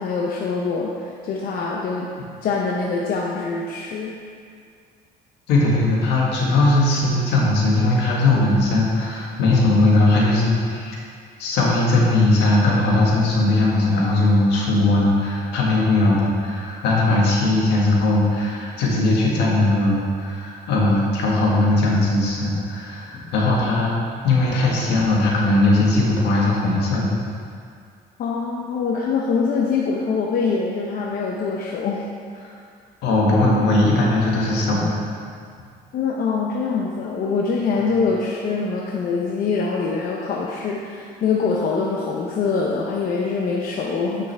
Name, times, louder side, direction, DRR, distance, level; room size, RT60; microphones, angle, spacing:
voice 1, 0.0-2.1 2.4-4.1 28.2-32.0 32.3-32.6 35.9-44.3, left 4 dB, 60° left, -2 dB, 0.8 m, -24 dB
voice 2, 5.5-11.0 11.4-23.9 24.2-27.2 33.0-35.0, left 2 dB, 85° left, -4 dB, 1.8 m, -19 dB
9.2 x 6.1 x 3.4 m, 2.2 s
cardioid pair, 110°, 17 cm